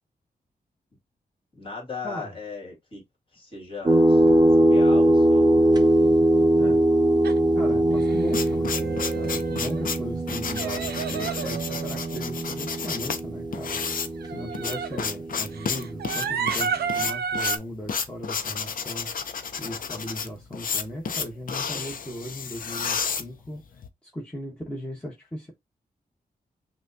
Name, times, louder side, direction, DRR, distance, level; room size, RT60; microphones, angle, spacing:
voice 1, 1.5-3.0 3.3-4.3 4.6-5.5, left 4 dB, 35° left, 2.1 m, -37 dB
sound 1, 3.9-17.0, right 1 dB, 25° right, 0.7 m, -22 dB
sound 2, 7.2-7.4 7.9-8.4 8.7-9.8 10.6-12.3 14.2-15.0 15.5-17.6, right 6 dB, 90° right, 0.6 m, -32 dB
voice 2, 7.5-13.8 14.2-19.1 19.6-23.6 24.0-25.5, equal, 5° left, 1.1 m, -37 dB
sound 3, 7.9-23.9, left 6 dB, 60° left, 0.6 m, -32 dB
5.9 x 2.3 x 2.7 m
wide cardioid pair, 120°, 16 cm